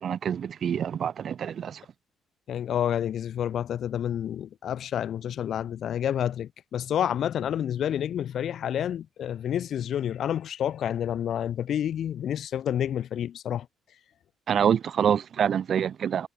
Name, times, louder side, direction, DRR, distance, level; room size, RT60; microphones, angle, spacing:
voice 1, 0.0-1.8 14.5-16.3, right 8 dB, 60° right, 1.2 m, -26 dB
voice 2, 2.5-13.7, left 10 dB, 65° left, 7.5 m, -29 dB
cardioid pair, 90°, 0 cm